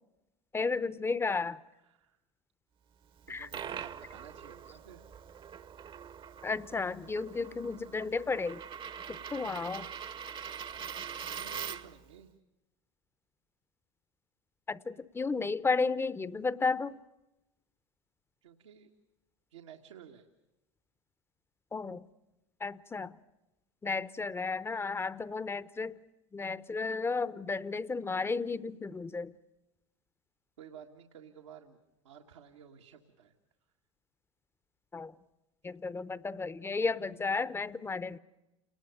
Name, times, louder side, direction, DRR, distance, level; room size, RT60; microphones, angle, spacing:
voice 1, 0.5-1.6 3.3-3.5 6.4-8.6 9.1-9.9 14.7-17.0 21.7-22.1 22.6-23.1 23.8-25.9 26.3-29.3 34.9-35.1 35.6-38.2, left 4 dB, 15° left, 18 dB, 0.8 m, -33 dB
voice 2, 1.7-2.2 3.3-5.0 10.9-12.3 18.4-18.9 19.5-20.3 30.6-31.8 32.0-33.3 35.6-35.8, right 8 dB, 80° right, 2 dB, 1.6 m, -53 dB
Coin (dropping), 3.2-12.0, right 7 dB, 35° right, 0.9 m, -43 dB
29.5 x 20.0 x 6.8 m, 0.97 s
hypercardioid pair, 85°, 15 cm